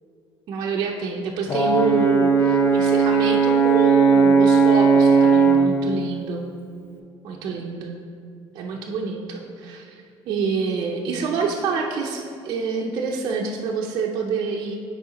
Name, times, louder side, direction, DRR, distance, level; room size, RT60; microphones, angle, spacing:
voice 1, 0.5-6.4 7.2-7.9 8.5-10.0 10.3-14.8, right 5 dB, 45° right, -2 dB, 0.6 m, -27 dB
Brass instrument, 1.5-5.7, right 5 dB, 25° left, 0.6 m, -17 dB
6.6 x 4.8 x 5.0 m, 2.4 s
cardioid pair, 165°, 9 cm